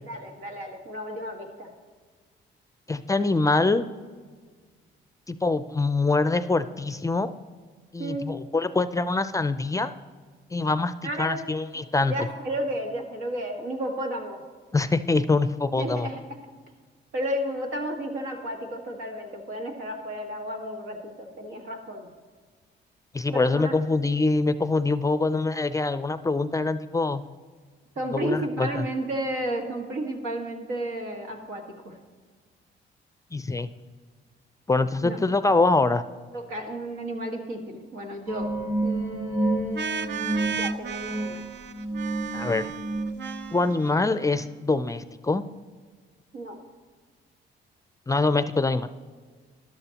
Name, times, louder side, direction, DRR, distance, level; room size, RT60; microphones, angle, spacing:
voice 1, 0.0-1.7 8.0-8.3 11.0-11.5 11.7-14.4 15.7-16.2 17.1-22.1 23.3-23.7 28.0-32.0 35.0-35.2 36.3-38.5 38.8-41.4 46.3-46.6, right 1 dB, 90° right, 1 dB, 1.8 m, -32 dB
voice 2, 2.9-3.9 5.3-7.3 7.9-9.9 10.5-12.1 14.7-16.1 23.1-27.2 28.1-28.8 33.3-33.7 34.7-36.0 42.3-42.7 43.5-45.5 48.1-48.9, left 3 dB, 15° left, 12 dB, 0.4 m, -24 dB
sound 1, 38.3-43.5, right 2 dB, 20° right, 1.3 m, -30 dB
sound 2, 39.8-44.4, right 6 dB, 60° right, 0.5 m, -35 dB
13.5 x 11.5 x 2.9 m, 1.5 s
cardioid pair, 90°, 20 cm